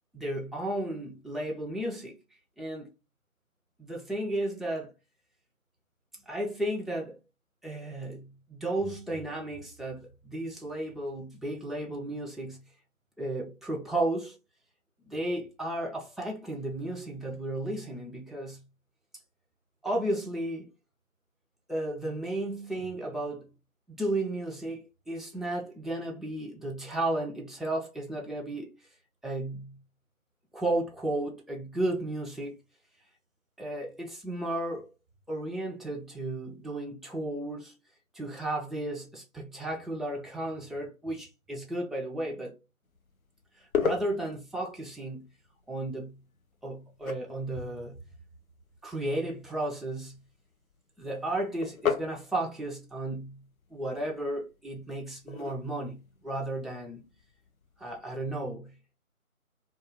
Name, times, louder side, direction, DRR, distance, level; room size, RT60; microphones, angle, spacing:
voice 1, 0.1-2.2 2.6-2.9 3.8-4.9 6.3-7.2 7.6-12.6 13.2-14.4 15.0-18.7 19.8-20.7 21.7-23.5 23.9-28.7 29.2-29.8 30.5-32.6 33.6-34.9 35.3-37.7 38.1-42.6 43.6-45.3 45.7-46.2 46.6-48.0 48.8-50.2 51.0-53.5 53.7-57.1 57.8-58.8, right 1 dB, ahead, 0.3 m, -34 dB
sound 1, 42.8-58.0, left 6 dB, 80° left, 0.7 m, -39 dB
2.3 x 2.3 x 2.8 m
figure-of-eight pair, 165°, 42 cm